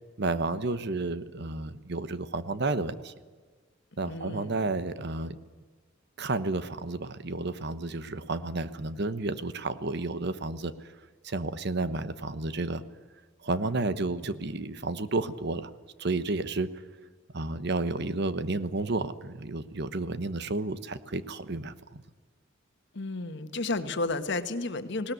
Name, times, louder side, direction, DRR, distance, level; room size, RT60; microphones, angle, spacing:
voice 1, 0.2-3.1 4.0-5.4 6.2-10.7 11.2-12.8 13.4-15.7 16.0-16.7 17.3-22.0, right 2 dB, 55° right, 13 dB, 1.1 m, -31 dB
voice 2, 4.1-4.6 22.9-25.1, left 2 dB, 60° left, 9 dB, 1.5 m, -32 dB
20.0 x 18.5 x 9.4 m, 1.4 s
head